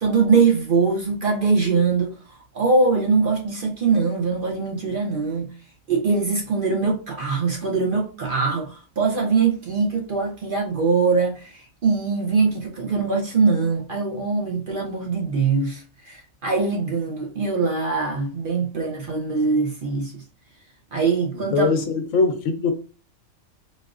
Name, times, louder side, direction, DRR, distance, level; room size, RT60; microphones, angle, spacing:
voice 1, 0.0-2.1 2.5-5.5 5.9-15.8 16.1-20.1 20.9-21.7, right 4 dB, 50° right, 0.7 m, -22 dB
voice 2, 21.3-22.7, left 4 dB, 70° left, 0.9 m, -22 dB
4.0 x 2.4 x 2.4 m
omnidirectional pair, 1.4 m